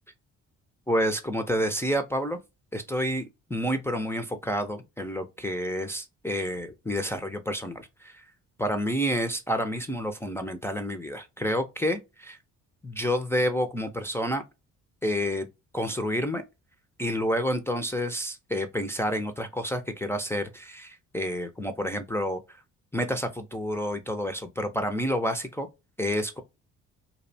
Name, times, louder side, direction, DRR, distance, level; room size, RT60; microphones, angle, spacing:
voice 1, 0.9-2.4 2.7-8.2 8.6-12.4 12.8-14.4 15.0-15.5 15.7-16.4 17.0-22.4 22.9-25.7 26.0-26.4, equal, 10° left, 0.3 m, -29 dB
2.6 x 2.1 x 2.5 m
cardioid pair, 90°, 30 cm